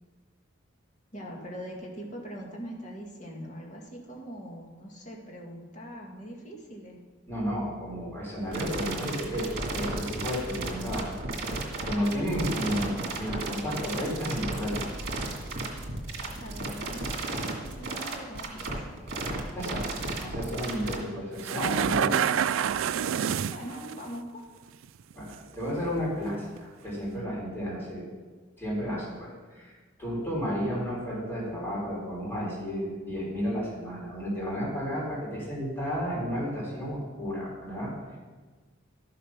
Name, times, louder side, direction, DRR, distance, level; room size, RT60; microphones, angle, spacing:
voice 1, 1.1-7.0 16.3-19.0 23.4-24.4, equal, 40° left, -1 dB, 2.1 m, -42 dB
voice 2, 7.3-11.1 11.9-14.7 19.5-19.8 20.1-22.4 25.2-28.1 28.6-38.2, equal, 10° left, -6 dB, 4.2 m, -32 dB
sound 1, 8.5-20.9, right 2 dB, 55° right, 2.2 m, -33 dB
sound 2, 21.4-23.9 24.8-25.4 25.8-25.9 26.6-26.7, right 8 dB, 75° right, 0.4 m, -27 dB
12.5 x 6.9 x 5.9 m, 1.3 s
head